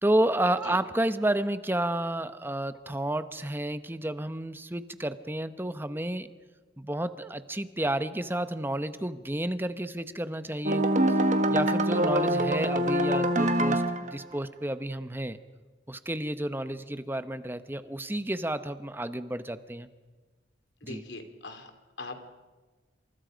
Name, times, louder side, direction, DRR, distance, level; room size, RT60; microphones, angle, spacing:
voice 1, 0.0-6.3 6.8-10.9 11.5-15.4 15.9-19.9 20.8-21.0, right 1 dB, 10° right, 11 dB, 0.9 m, -31 dB
sound 1, 10.6-14.1, right 1 dB, 40° right, 1.7 m, -24 dB
voice 2, 20.8-21.7 22.0-22.2, left 2 dB, 75° left, 7 dB, 3.0 m, -41 dB
28.5 x 27.0 x 5.2 m, 1.3 s
head